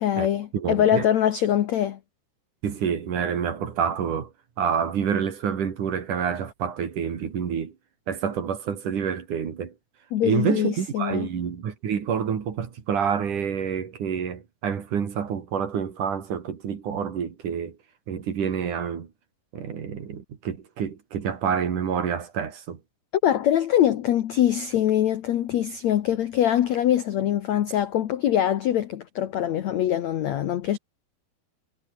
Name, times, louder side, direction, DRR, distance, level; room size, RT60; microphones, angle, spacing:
voice 1, 0.0-2.0 10.1-11.3 23.2-30.8, left 11 dB, 70° left, 1.6 m, -23 dB
voice 2, 0.5-1.1 2.6-4.3 4.6-7.7 8.1-9.7 10.2-17.8 18.1-19.1 19.5-22.8, right 7 dB, 55° right, 3.8 m, -28 dB
omnidirectional pair, 4.8 m